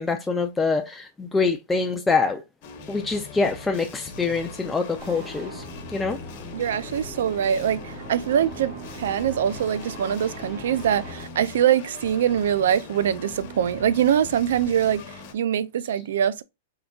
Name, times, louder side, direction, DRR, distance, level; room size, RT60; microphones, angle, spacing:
voice 1, 0.0-2.4 2.9-5.6 5.9-6.2, left 4 dB, 10° left, 0.4 m, -25 dB
sound 1, 2.6-15.3, left 3 dB, 45° left, 1.1 m, -41 dB
sound 2, 5.0-11.2, right 1 dB, 35° right, 1.5 m, -41 dB
voice 2, 6.5-16.4, right 9 dB, 75° right, 0.4 m, -23 dB
3.8 x 3.5 x 2.3 m
hypercardioid pair, 140°, 0 cm